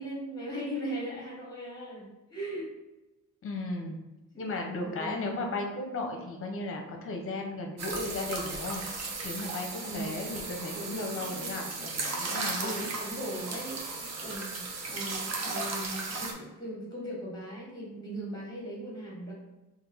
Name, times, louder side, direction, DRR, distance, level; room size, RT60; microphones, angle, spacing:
voice 1, 0.0-2.7 4.3-5.3 9.8-10.3 10.7-11.7 12.6-19.3, right 1 dB, 10° left, -4 dB, 1.3 m, -39 dB
voice 2, 3.4-4.0 4.4-8.8 9.2-12.9, left 2 dB, 40° left, 1 dB, 0.7 m, -35 dB
sound 1, 7.8-16.3, right 3 dB, 55° right, 0.7 m, -36 dB
3.4 x 2.5 x 4.0 m, 1.0 s
wide cardioid pair, 170°, 33 cm